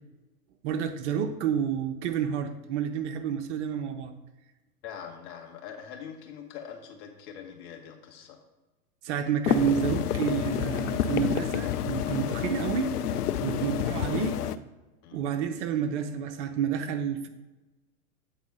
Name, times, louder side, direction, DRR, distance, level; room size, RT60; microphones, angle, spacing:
voice 1, 0.6-4.1 9.0-12.9 13.4-14.4 15.1-17.3, right 8 dB, 50° right, 8 dB, 0.8 m, -29 dB
voice 2, 4.8-8.4 12.4-12.6 13.5-13.8 15.0-15.3, left 8 dB, 45° left, 3 dB, 1.5 m, -43 dB
sound 1, 9.4-14.6, left 9 dB, 75° left, 0.6 m, -29 dB
8.4 x 4.1 x 5.3 m, 1.1 s
hypercardioid pair, 110°, 46 cm